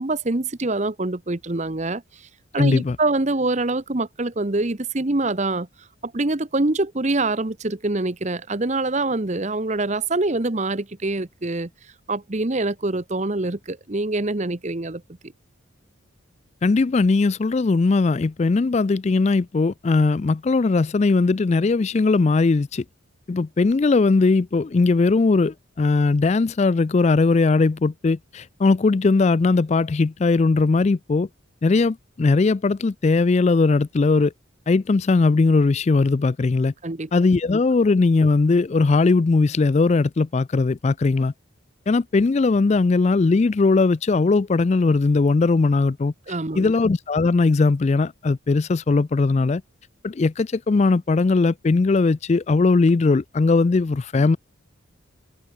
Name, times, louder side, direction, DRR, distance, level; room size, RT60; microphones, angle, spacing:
voice 1, 0.0-2.3 2.5-5.7 6.0-11.7 12.1-15.0 36.8-37.1 46.3-46.8, right 2 dB, 35° right, 0.9 m, -25 dB
voice 2, 2.6-3.0 16.6-22.8 23.3-31.3 31.6-34.3 34.7-36.7 37.1-41.3 41.9-46.1 46.6-49.6 50.0-54.4, left 3 dB, 30° left, 0.3 m, -19 dB
head